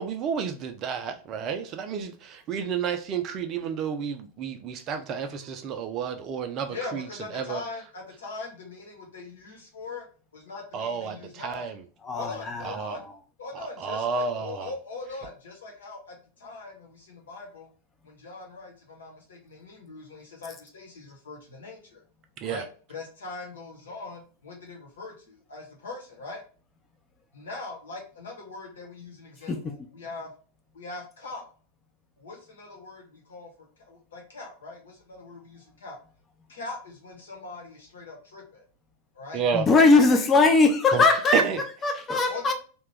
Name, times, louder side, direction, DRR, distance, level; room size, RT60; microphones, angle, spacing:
voice 1, 0.0-7.6 10.7-11.8 12.6-13.0 13.5-14.7 22.4-22.6 39.3-39.7 40.9-41.0 41.3-41.6, right 6 dB, 35° right, 0.5 m, -31 dB
voice 2, 6.7-10.0 10.3-11.6 12.1-13.0 13.4-17.7 18.0-21.8 22.4-26.4 27.3-30.3 30.7-31.4 32.2-33.5 33.9-36.0 36.5-38.6 39.2-40.2 42.3-42.5, left 3 dB, 65° left, 1.0 m, -41 dB
voice 3, 12.0-13.1 29.5-29.7 39.5-41.4 41.8-42.5, left 3 dB, 20° left, 0.6 m, -20 dB
2.9 x 2.3 x 3.3 m
figure-of-eight pair, 90°, 0 cm